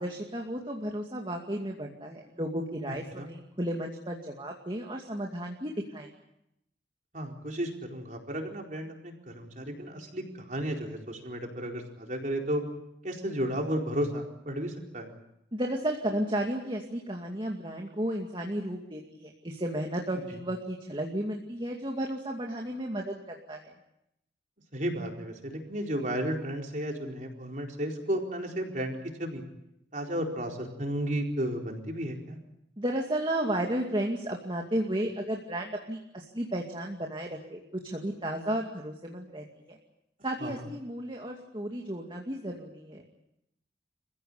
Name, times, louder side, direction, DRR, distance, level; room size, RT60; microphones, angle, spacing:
voice 1, 0.0-6.1 15.5-23.1 23.5-23.7 32.8-39.8 40.2-43.0, right 1 dB, 25° right, 1 dB, 2.3 m, -33 dB
voice 2, 2.9-3.3 7.1-12.6 13.0-15.1 20.3-20.4 24.7-29.4 29.9-32.4 40.4-40.6, equal, 45° right, 1 dB, 4.5 m, -33 dB
30.0 x 16.0 x 8.8 m, 0.82 s
head